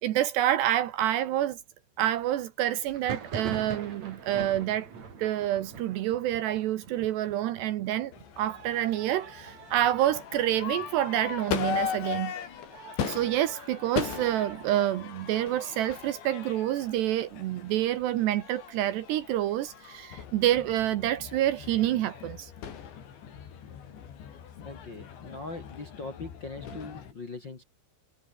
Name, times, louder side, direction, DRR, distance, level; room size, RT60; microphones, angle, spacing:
voice 1, 0.0-1.6 2.0-4.9 5.2-12.3 12.7-22.5, right 13 dB, 70° right, 2.9 m, -28 dB
Thunder, 2.9-12.4 12.7-13.4 13.6-14.6 15.0-16.7, right 5 dB, 40° right, 4.3 m, -44 dB
Crowd / Fireworks, 8.1-27.1, left 8 dB, 65° left, 5.8 m, -39 dB
voice 2, 24.6-27.6, left 3 dB, 35° left, 2.2 m, -41 dB
omnidirectional pair, 5.5 m